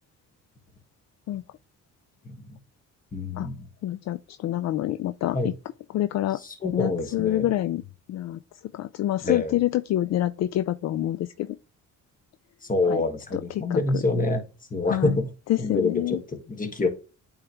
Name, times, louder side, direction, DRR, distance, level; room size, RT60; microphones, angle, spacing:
voice 1, 2.2-2.6 3.1-3.7 5.3-5.5 6.3-7.5 9.2-9.6 12.7-14.4 14.7-15.3 15.6-16.9, left 3 dB, 25° left, 1.6 m, -26 dB
voice 2, 3.8-5.5 5.9-6.4 6.7-7.8 8.1-8.4 8.7-11.5 12.9-13.0 13.3-13.4 13.7-14.0 14.9-15.2 15.5-16.2, left 13 dB, 60° left, 0.4 m, -26 dB
8.5 x 3.6 x 3.0 m
cardioid pair, 90°, 30 cm